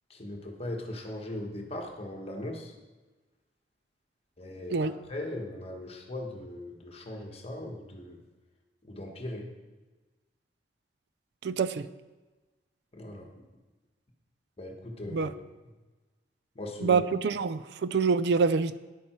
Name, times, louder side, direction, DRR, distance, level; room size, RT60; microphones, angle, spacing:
voice 1, 0.1-2.7 4.4-8.2 8.8-9.5 12.9-13.4 14.6-15.3 16.5-17.0, left 1 dB, 35° left, 1 dB, 1.4 m, -39 dB
voice 2, 11.4-11.9 15.1-15.3 16.8-18.8, right 5 dB, 65° right, 14 dB, 0.4 m, -26 dB
11.0 x 8.5 x 4.6 m, 1.2 s
head